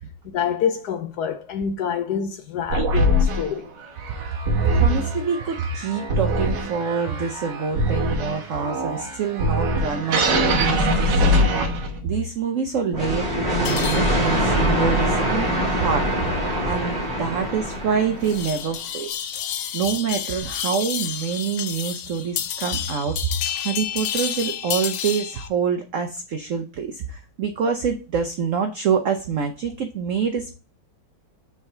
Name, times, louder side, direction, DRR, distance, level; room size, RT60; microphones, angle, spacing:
voice 1, 0.2-3.7, left 7 dB, 70° left, 1.0 m, -26 dB
sound 1, 2.7-12.1, equal, 65° right, 1.7 m, -23 dB
voice 2, 4.6-11.3 12.0-16.1 16.6-19.1 19.7-23.3 23.5-30.5, right 6 dB, 90° right, 0.6 m, -26 dB
sound 2, 12.9-18.6, equal, 30° right, 2.5 m, -23 dB
sound 3, 13.7-25.5, left 9 dB, 90° left, 1.6 m, -31 dB
6.3 x 3.6 x 4.4 m
omnidirectional pair, 2.2 m